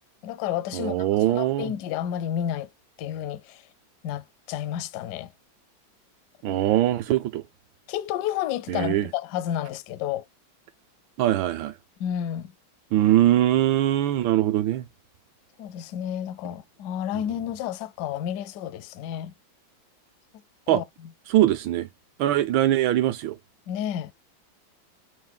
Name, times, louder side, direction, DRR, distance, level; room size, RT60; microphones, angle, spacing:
voice 1, 0.2-2.7 3.0-3.6 4.0-5.3 6.5-6.6 7.9-10.2 12.0-12.5 15.6-19.3 20.7-20.8 23.7-24.1, left 10 dB, 75° left, 1.0 m, -31 dB
voice 2, 0.7-1.7 6.4-7.4 8.7-9.1 11.2-11.7 12.9-14.9 20.7-20.8 21.3-21.9 22.2-23.4, right 13 dB, 80° right, 1.4 m, -22 dB
5.5 x 2.6 x 3.7 m
omnidirectional pair, 2.2 m